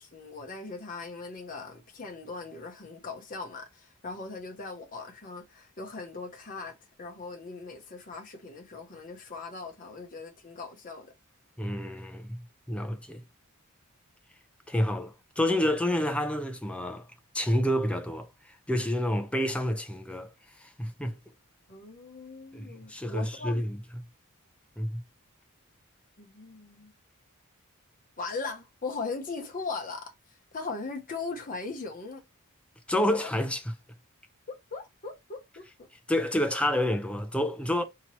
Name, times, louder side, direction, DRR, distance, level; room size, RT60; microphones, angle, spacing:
voice 1, 0.0-11.1 21.7-23.6 26.2-26.9 28.2-32.2 32.9-33.3 34.5-35.9, left 4 dB, 40° left, 0.9 m, -39 dB
voice 2, 11.6-12.4 12.7-13.2 14.7-17.1 17.3-20.3 20.6-21.2 22.5-23.8 24.8-25.0 32.9-33.6 36.1-37.8, left 1 dB, 5° left, 0.5 m, -29 dB
4.5 x 2.9 x 3.0 m
head